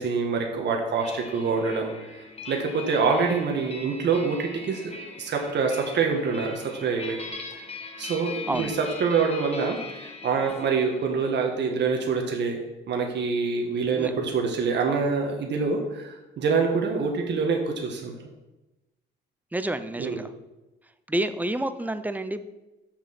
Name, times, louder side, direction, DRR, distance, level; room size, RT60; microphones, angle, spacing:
voice 1, 0.0-1.9 2.5-4.8 5.2-7.2 8.0-12.6 12.9-18.1 20.0-20.2, right 5 dB, 60° right, 2 dB, 1.5 m, -25 dB
sound 1, 1.0-11.3, left 4 dB, 30° left, 1.2 m, -41 dB
voice 2, 8.5-8.8 13.9-14.1 19.5-20.3 21.1-22.5, right 1 dB, 10° right, 11 dB, 0.6 m, -29 dB
6.7 x 6.4 x 5.9 m, 1.0 s
cardioid pair, 90°, 20 cm